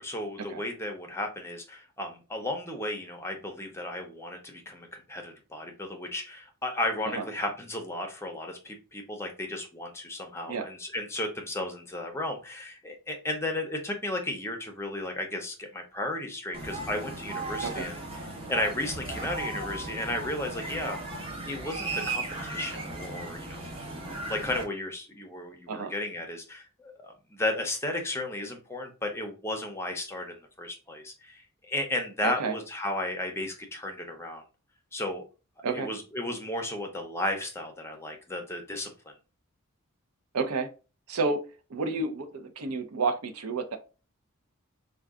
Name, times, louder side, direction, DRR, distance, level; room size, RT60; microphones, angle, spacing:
voice 1, 0.0-18.0 18.5-21.0 21.5-23.7 24.3-34.4 34.9-35.2 35.7-38.9, left 1 dB, 10° left, 3 dB, 0.6 m, -34 dB
sound 1, 16.5-24.6, right 2 dB, 25° right, 0.8 m, -36 dB
voice 2, 32.2-32.5 35.6-35.9 40.3-40.7 41.1-41.4 41.7-43.8, right 4 dB, 85° right, 7 dB, 0.6 m, -30 dB
3.7 x 2.3 x 3.5 m, 0.33 s
head